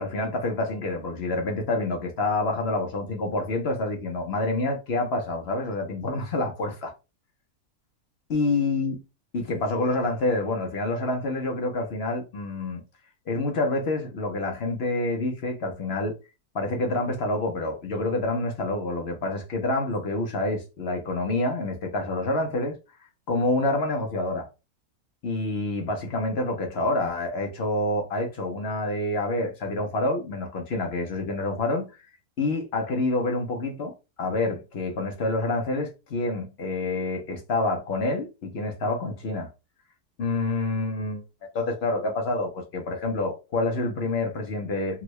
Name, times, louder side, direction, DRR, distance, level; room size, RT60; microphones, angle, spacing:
voice 1, 0.0-6.9 8.3-9.0 9.3-12.8 13.3-16.2 16.5-22.8 23.3-24.5 25.2-31.9 32.4-39.5 40.2-41.2 41.5-45.0, left 2 dB, 55° left, 0.8 m, -27 dB
3.5 x 2.2 x 3.0 m
omnidirectional pair, 1.6 m